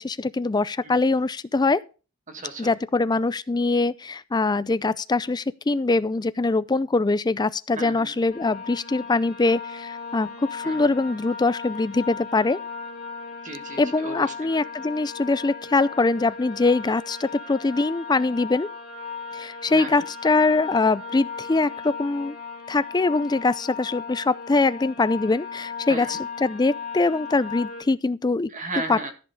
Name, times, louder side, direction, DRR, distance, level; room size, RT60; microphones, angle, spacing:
voice 1, 0.0-1.8 2.6-12.6 13.8-18.7 19.3-22.4 22.7-28.5 28.9-29.0, left 3 dB, 20° left, 0.4 m, -23 dB
voice 2, 2.3-2.7 7.8-8.2 10.6-10.9 13.4-14.3 19.7-20.0 25.9-26.2 28.5-29.1, right 2 dB, 40° right, 1.8 m, -35 dB
sound 1, 8.3-27.8, left 5 dB, 45° left, 2.9 m, -37 dB
13.5 x 5.5 x 5.1 m
head